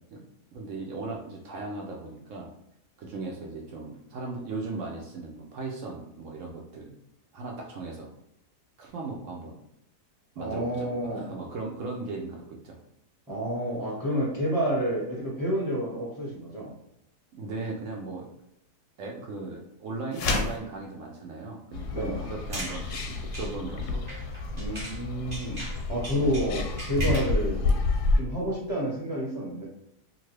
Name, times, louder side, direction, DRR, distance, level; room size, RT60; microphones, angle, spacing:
voice 1, 0.5-2.5 3.0-6.9 7.3-8.1 8.8-9.6 10.4-12.8 17.3-18.3 19.0-24.0 26.1-26.3 27.0-27.3, right 3 dB, 65° right, -1 dB, 0.8 m, -37 dB
voice 2, 10.4-11.2 13.3-16.7 21.9-22.2 24.5-25.6 25.9-27.6 28.2-29.6, equal, ahead, -7 dB, 0.9 m, -29 dB
sound 1, 20.1-20.7, left 3 dB, 65° left, 0.8 m, -27 dB
sound 2, 21.7-28.2, left 3 dB, 85° left, 1.1 m, -29 dB
sound 3, 22.3-25.0 25.3-27.4, right 1 dB, 35° right, 0.8 m, -39 dB
2.6 x 2.5 x 3.1 m, 0.78 s
omnidirectional pair, 1.7 m